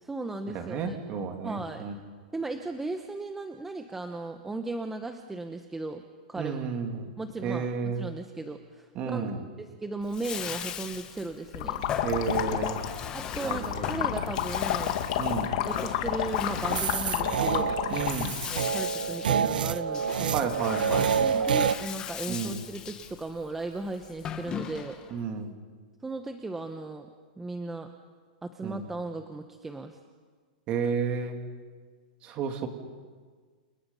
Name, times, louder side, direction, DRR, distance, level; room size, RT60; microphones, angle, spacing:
voice 1, 0.0-1.0 1.4-1.8 2.3-6.0 6.3-6.6 7.2-9.3 9.6-11.8 13.1-14.9 15.6-17.8 18.5-20.4 21.1-25.0 26.0-27.1 27.4-27.9 28.4-30.0, right 2 dB, 5° right, 6 dB, 1.0 m, -36 dB
voice 2, 0.5-1.9 6.4-7.1 7.4-8.1 8.9-9.4 12.0-12.8 13.4-14.1 15.2-15.6 17.9-18.4 20.3-21.1 22.3-22.6 25.1-25.5 28.6-28.8 30.7-31.4 32.2-32.7, right 6 dB, 25° right, 5 dB, 2.7 m, -32 dB
Bathtub (filling or washing), 10.0-25.2, left 8 dB, 15° left, 1.3 m, -39 dB
sound 1, 11.5-18.3, left 11 dB, 45° left, 2.3 m, -30 dB
sound 2, 16.7-21.7, right 7 dB, 90° right, 1.0 m, -27 dB
29.5 x 28.5 x 5.6 m, 1.5 s
supercardioid pair, 165°, 5 cm